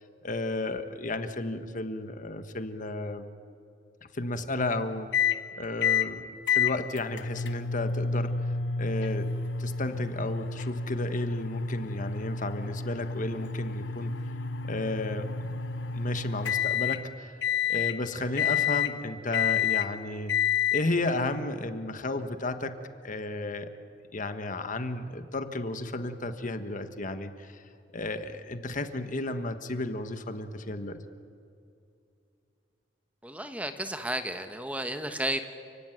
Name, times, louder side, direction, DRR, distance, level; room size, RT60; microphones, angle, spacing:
voice 1, 0.2-3.3 4.1-5.1 5.6-8.5 8.8-9.3 9.6-14.1 14.7-15.6 15.9-17.4 17.7-20.3 20.7-23.7 24.1-27.6 27.9-31.0, left 2 dB, 45° left, 9 dB, 1.4 m, -33 dB
sound 1, 5.1-5.4 5.8-6.1 6.5-17.0 17.4-18.0 18.4-18.9 19.3-19.9 20.3-20.8, left 7 dB, 75° left, 1.1 m, -29 dB
voice 2, 33.2-35.4, right 1 dB, 10° right, 8 dB, 1.2 m, -32 dB
30.0 x 17.0 x 9.3 m, 2.5 s
head